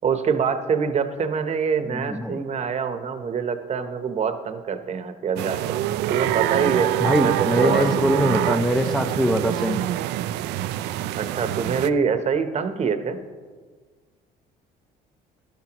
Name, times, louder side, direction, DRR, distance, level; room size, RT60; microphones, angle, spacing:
voice 1, 0.0-5.8 6.1-6.9 7.2-8.0 11.2-13.2, right 6 dB, 40° right, 9 dB, 0.9 m, -25 dB
voice 2, 1.9-2.4 7.0-9.8, equal, ahead, 5 dB, 0.6 m, -22 dB
sound 1, 5.4-11.9, right 13 dB, 85° right, 0.4 m, -25 dB
12.0 x 12.0 x 3.0 m, 1.5 s
cardioid pair, 110°, 17 cm